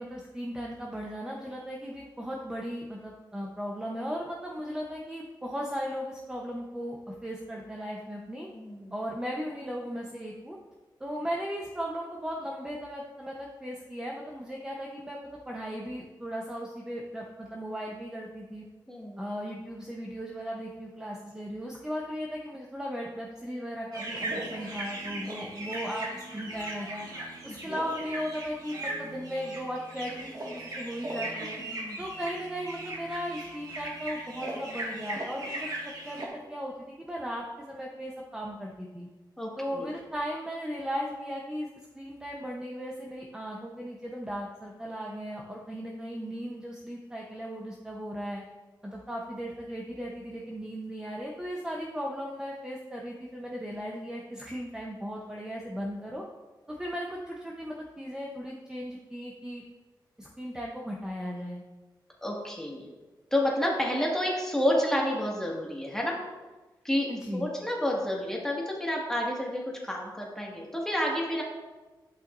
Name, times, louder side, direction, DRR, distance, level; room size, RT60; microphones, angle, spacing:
voice 1, 0.0-8.5 8.9-10.6 11.0-15.2 15.5-18.6 19.2-27.1 27.4-31.6 32.0-35.6 36.0-39.1 39.6-41.7 41.9-48.4 48.8-56.2 56.7-59.6 60.2-61.6 67.1-67.5, equal, 10° right, -1 dB, 0.9 m, -37 dB
voice 2, 8.5-8.9 18.9-19.2 25.2-25.4 27.5-27.8 31.3-32.0 39.4-39.9 62.2-62.9 63.3-66.2 66.8-71.4, left 1 dB, 5° left, -3 dB, 1.9 m, -30 dB
sound 1, 23.9-36.3, right 1 dB, 50° right, 1.9 m, -38 dB
11.5 x 5.7 x 2.6 m, 1.2 s
wide cardioid pair, 90°, 8 cm